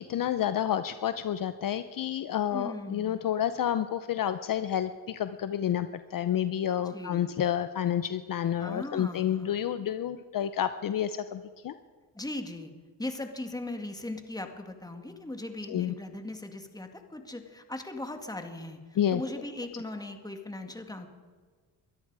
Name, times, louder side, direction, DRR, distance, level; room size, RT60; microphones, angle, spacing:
voice 1, 0.0-11.7 15.7-15.9 19.0-19.2, left 10 dB, 50° left, 11 dB, 0.7 m, -29 dB
voice 2, 2.5-3.2 6.8-7.4 8.6-9.6 12.1-12.7 13.0-21.1, left 2 dB, 10° left, 5 dB, 2.1 m, -39 dB
22.5 x 13.0 x 4.9 m, 1.5 s
cardioid pair, 85°, 42 cm